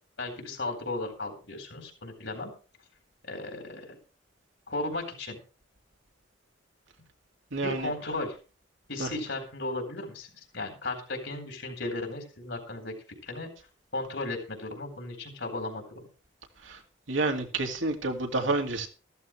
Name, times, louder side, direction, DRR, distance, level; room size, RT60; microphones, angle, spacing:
voice 1, 0.2-2.5 3.2-4.0 4.7-5.4 7.6-8.4 8.9-12.9 13.2-13.5 13.9-15.8, left 2 dB, 65° left, 4 dB, 4.1 m, -35 dB
voice 2, 7.5-7.9 9.0-9.1 16.6-16.8 17.1-18.9, right 2 dB, 75° right, 3 dB, 2.2 m, -29 dB
14.0 x 13.5 x 3.2 m, 0.34 s
head